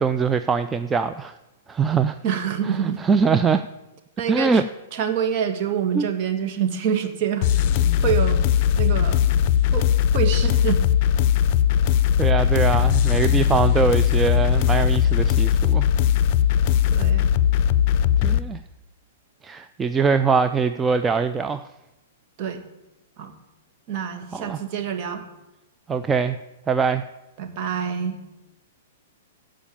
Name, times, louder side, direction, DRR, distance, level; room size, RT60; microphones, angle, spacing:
voice 1, 0.0-1.4 1.7-2.2 2.7-3.6 4.3-4.6 5.9-6.1 12.2-15.9 18.2-18.6 19.4-21.7 24.3-24.6 25.9-26.4 26.7-27.0, right 5 dB, 15° right, 9 dB, 0.5 m, -22 dB
voice 2, 2.2-3.1 4.2-4.6 4.9-7.5 8.0-9.2 9.7-9.9 10.1-10.8 16.9-17.4 22.4-22.6 23.2-23.3 23.9-25.3 27.4-28.3, right 8 dB, 45° right, 5 dB, 2.1 m, -26 dB
sound 1, 7.4-18.4, left 10 dB, 45° left, 0.6 m, -19 dB
15.5 x 5.1 x 8.9 m, 1.0 s
hypercardioid pair, 115°, 0 cm